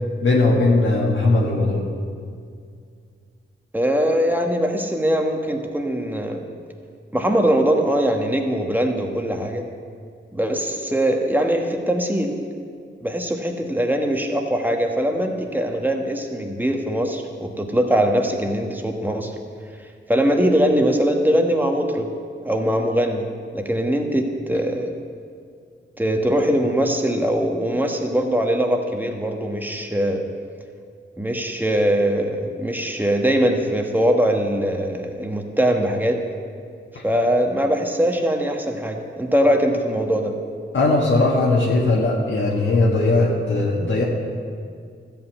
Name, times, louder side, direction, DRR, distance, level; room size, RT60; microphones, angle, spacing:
voice 1, 0.2-1.8 36.9-37.0 40.7-44.0, left 2 dB, 75° left, -4 dB, 1.6 m, -19 dB
voice 2, 3.7-6.4 7.1-9.6 10.3-12.3 13.0-19.3 20.1-22.1 22.4-24.9 26.0-30.3 31.2-36.2 37.0-40.3, equal, 10° right, 3 dB, 1.3 m, -21 dB
13.5 x 5.7 x 8.4 m, 2.2 s
wide cardioid pair, 95°, 20 cm